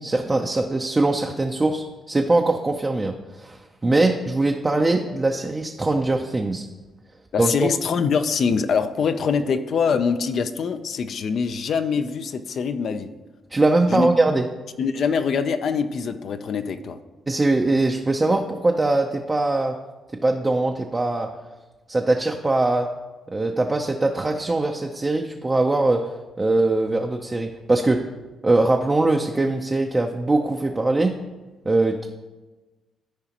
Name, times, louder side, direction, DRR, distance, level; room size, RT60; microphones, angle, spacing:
voice 1, 0.0-6.7 7.4-7.7 13.5-14.5 17.3-19.7 20.2-21.3 21.9-22.9 23.3-26.1 26.4-28.0 28.4-31.1 31.7-32.1, right 2 dB, 20° right, 2 dB, 0.5 m, -21 dB
voice 2, 7.3-13.1 13.9-14.1 14.8-17.0, left 6 dB, 60° left, 9 dB, 0.5 m, -24 dB
13.5 x 4.9 x 2.9 m, 1.2 s
cardioid pair, 90°, 0 cm